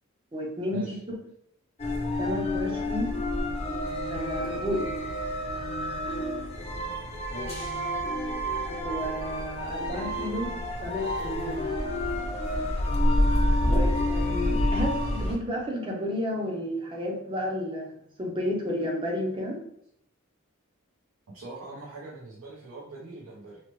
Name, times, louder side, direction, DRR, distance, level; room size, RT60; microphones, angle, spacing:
voice 1, 0.3-1.2 2.2-3.1 4.1-4.9 8.8-10.6 10.8-11.7 13.7-17.9 18.2-19.6, equal, 25° right, -1 dB, 0.5 m, -32 dB
sound 1, 1.8-15.4, left 1 dB, 30° left, 0.4 m, -28 dB
voice 2, 7.3-7.7 13.6-13.9 21.3-23.6, right 2 dB, 85° right, -4 dB, 0.6 m, -41 dB
2.9 x 2.1 x 3.0 m, 0.73 s
head